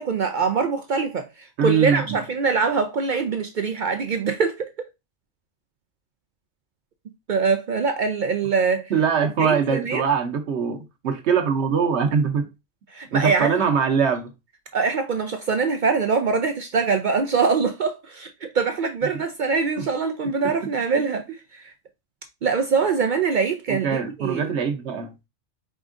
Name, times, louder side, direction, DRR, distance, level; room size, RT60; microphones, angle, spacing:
voice 1, 0.0-4.7 7.3-8.9 9.2-10.1 12.9-13.7 14.7-21.3 21.5-21.7 22.4-24.5, right 5 dB, 75° right, 0.4 m, -23 dB
voice 2, 1.6-2.2 8.9-12.5 13.1-14.3 19.8-19.9 23.7-25.1, right 6 dB, 60° right, 1.0 m, -22 dB
5.1 x 3.6 x 2.5 m
omnidirectional pair, 1.4 m